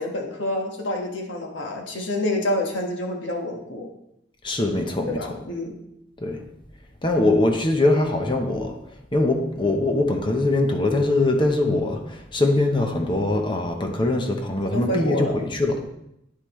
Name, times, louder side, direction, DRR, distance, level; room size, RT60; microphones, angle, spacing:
voice 1, 0.0-3.9 5.1-5.7 14.6-15.4, left 1 dB, 90° left, 1.6 m, -28 dB
voice 2, 4.4-5.4 6.2-6.4 7.0-8.8 9.1-15.9, left 2 dB, 25° left, 0.9 m, -22 dB
9.5 x 8.1 x 3.2 m
head